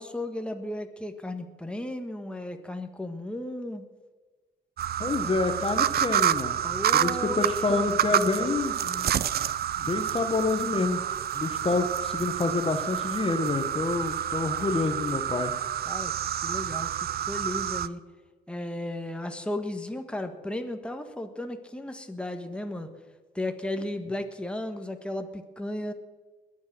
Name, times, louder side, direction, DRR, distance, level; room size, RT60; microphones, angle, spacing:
voice 1, 0.0-3.8 6.6-8.6 8.8-9.1 15.9-16.1 16.4-18.0 18.5-22.9 23.3-25.9, left 1 dB, 5° left, 6 dB, 1.5 m, -35 dB
sound 1, 4.8-17.9, right 10 dB, 50° right, 0.6 m, -28 dB
voice 2, 5.0-6.6 6.9-8.7 9.8-11.0 11.3-15.5, left 3 dB, 30° left, 6 dB, 1.2 m, -28 dB
21.0 x 7.5 x 6.2 m, 1.3 s
cardioid pair, 90°, 20 cm